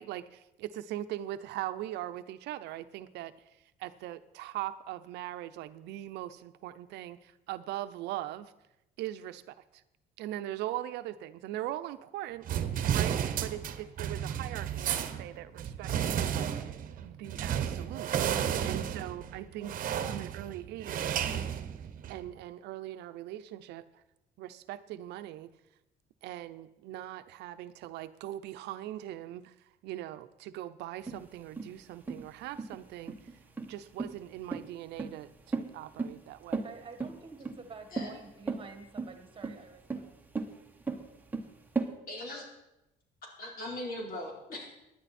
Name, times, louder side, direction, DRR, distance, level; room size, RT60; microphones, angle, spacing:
voice 1, 0.0-3.3 3.8-8.5 9.0-9.6 10.2-12.5 12.9-18.3 18.6-19.8 20.1-21.1 22.1-24.0 24.4-25.5 26.2-29.5 29.8-33.2 33.6-36.6, right 13 dB, 85° right, 12 dB, 0.7 m, -40 dB
sound 1, 12.5-22.3, right 9 dB, 55° right, 1.0 m, -33 dB
sound 2, 31.1-41.9, right 4 dB, 10° right, 1.3 m, -37 dB
voice 2, 36.6-40.1, right 4 dB, 30° right, 7 dB, 1.7 m, -49 dB
voice 3, 41.8-42.5 43.4-44.7, left 1 dB, 60° left, 0 dB, 4.2 m, -40 dB
16.0 x 10.5 x 4.3 m, 0.91 s
cardioid pair, 110°, 17 cm